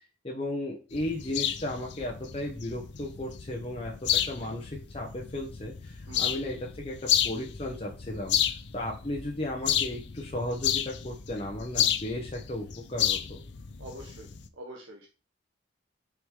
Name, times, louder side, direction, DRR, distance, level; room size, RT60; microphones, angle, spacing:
voice 1, 0.2-8.4 8.7-13.4, left 1 dB, 30° left, -1 dB, 0.9 m, -35 dB
sound 1, 0.9-14.5, left 10 dB, 60° left, 0.6 m, -32 dB
voice 2, 6.1-6.4 13.8-14.3 14.6-15.1, right 1 dB, 80° right, -1 dB, 1.3 m, -44 dB
6.1 x 4.9 x 3.7 m, 0.33 s
head